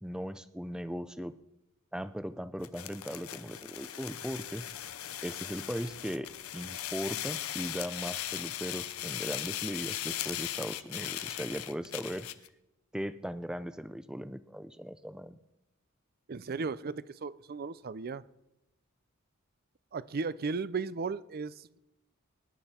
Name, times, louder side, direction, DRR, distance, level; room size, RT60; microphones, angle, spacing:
voice 1, 0.0-1.3 1.9-4.6 5.2-12.3 12.9-15.4, equal, 5° right, 0.6 m, -38 dB
sound 1, 2.6-12.5, left 12 dB, 90° left, 0.7 m, -38 dB
voice 2, 16.3-18.2 19.9-21.8, right 4 dB, 45° right, 0.5 m, -36 dB
24.5 x 10.5 x 4.4 m
head